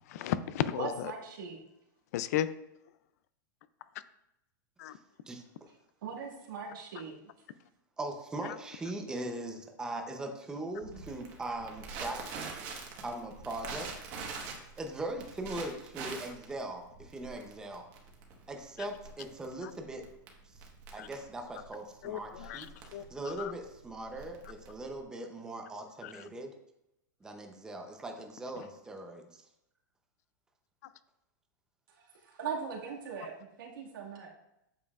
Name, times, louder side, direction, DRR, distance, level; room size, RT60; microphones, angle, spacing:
voice 1, 0.1-0.9 2.1-2.5 4.8-5.0 21.0-21.1 22.0-22.7 22.9-23.0 23.4-23.5, left 11 dB, 50° left, 14 dB, 0.4 m, -33 dB
voice 2, 0.8-1.6 6.0-7.2 31.9-34.3, right 5 dB, 85° right, -1 dB, 2.0 m, -40 dB
voice 3, 8.0-12.3 13.0-14.1 14.8-17.9 18.5-20.0 20.4-26.5 27.2-29.4, right 1 dB, 5° right, 3 dB, 0.7 m, -40 dB
Crackle, 10.8-25.0, right 4 dB, 35° right, 1.3 m, -45 dB
8.6 x 6.8 x 2.4 m, 0.85 s
supercardioid pair, 160°, 11 cm